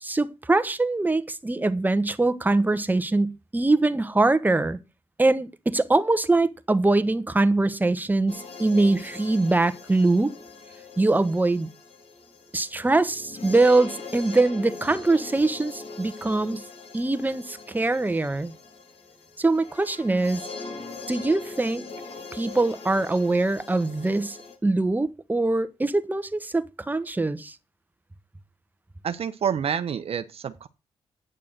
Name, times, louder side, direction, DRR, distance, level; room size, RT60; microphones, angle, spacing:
voice 1, 0.0-4.8 5.2-10.3 11.0-11.7 12.5-16.6 16.9-18.5 19.4-20.4 21.1-21.8 22.3-27.5, right 2 dB, 15° right, 1.1 m, -23 dB
sound 1, 8.3-24.6, left 4 dB, 65° left, 2.8 m, -41 dB
voice 2, 29.0-30.7, right 8 dB, 60° right, 0.8 m, -28 dB
9.0 x 6.7 x 6.5 m
cardioid pair, 65°, 11 cm